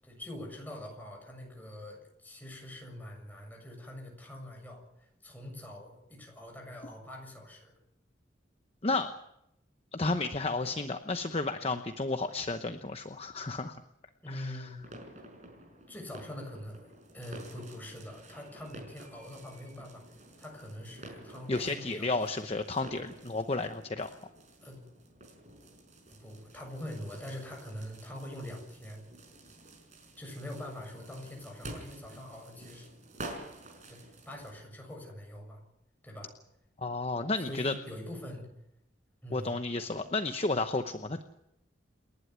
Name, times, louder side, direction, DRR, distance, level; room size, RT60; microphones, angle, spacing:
voice 1, 0.0-7.7 14.2-14.8 15.9-20.0 20.4-22.1 24.6-24.8 26.1-29.0 30.2-32.9 33.9-35.6 36.0-36.3 37.5-38.5 39.2-39.5, left 1 dB, 10° left, 1 dB, 7.2 m, -44 dB
voice 2, 9.9-13.8 14.3-14.7 21.5-24.1 36.8-37.7 39.3-41.2, left 3 dB, 35° left, 8 dB, 0.9 m, -32 dB
sound 1, 14.8-34.6, right 1 dB, 40° right, 5.4 m, -50 dB
29.0 x 11.5 x 9.6 m, 0.81 s
head